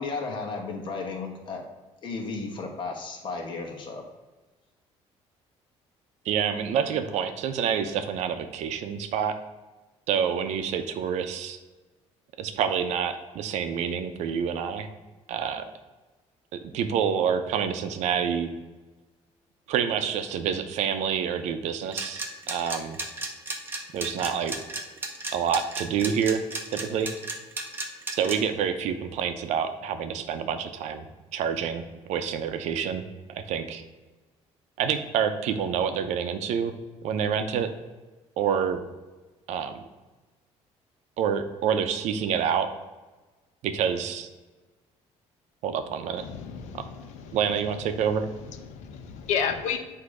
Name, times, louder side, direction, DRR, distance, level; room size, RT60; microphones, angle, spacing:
voice 1, 0.0-1.6 2.0-4.0, left 4 dB, 40° left, 1 dB, 1.2 m, -34 dB
voice 2, 6.2-9.4 10.1-11.6 12.4-14.9 15.3-15.7 16.5-18.5 19.7-23.0 23.9-24.6 25.3-26.5 26.7-27.1 28.2-31.0 31.3-31.8 32.1-33.0 33.3-33.8 34.8-36.7 37.0-37.7 38.4-38.8 39.5-39.8 41.2-42.7 43.6-44.3 45.6-46.2 46.7-46.8 47.3-48.3, right 7 dB, 75° right, 8 dB, 0.6 m, -27 dB
sound 1, 21.9-28.4, right 2 dB, 15° right, 0.8 m, -33 dB
voice 3, 46.2-47.4 48.7-49.8, left 7 dB, 90° left, 7 dB, 0.7 m, -31 dB
8.3 x 2.8 x 4.9 m, 1.2 s
cardioid pair, 155°, 12 cm